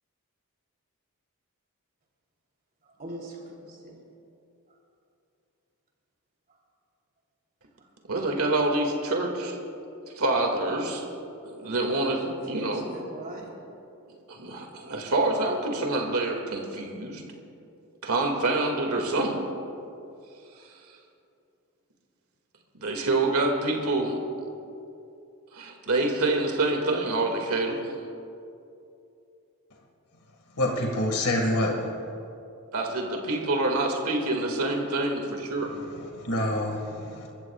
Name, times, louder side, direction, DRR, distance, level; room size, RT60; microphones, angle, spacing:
voice 1, 3.0-4.0 12.2-13.5, right 1 dB, 40° right, -2 dB, 3.3 m, -40 dB
voice 2, 8.1-9.6 10.2-11.0 11.4-12.8 14.3-17.2 18.0-19.4 22.8-24.1 25.5-27.9 32.7-35.7, right 2 dB, 80° right, 1 dB, 2.1 m, -26 dB
voice 3, 30.6-31.9 36.2-37.3, left 1 dB, 85° left, 1 dB, 1.8 m, -26 dB
30.0 x 14.5 x 2.4 m, 2.7 s
head